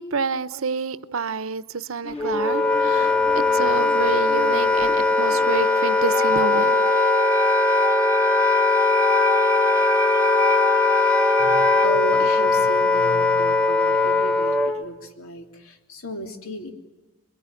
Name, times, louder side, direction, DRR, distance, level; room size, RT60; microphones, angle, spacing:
voice 1, 0.0-6.8, right 5 dB, 75° right, 0.8 m, -28 dB
sound 1, 2.0-5.6, left 2 dB, 30° left, 2.1 m, -39 dB
Wind instrument woodwind instrument, 2.2-14.8, left 3 dB, 5° left, 1.0 m, -20 dB
sound 2, 4.4-11.9, right 3 dB, 15° right, 1.1 m, -29 dB
voice 2, 11.4-16.7, equal, 90° left, 3.2 m, -33 dB
27.0 x 22.0 x 9.1 m
head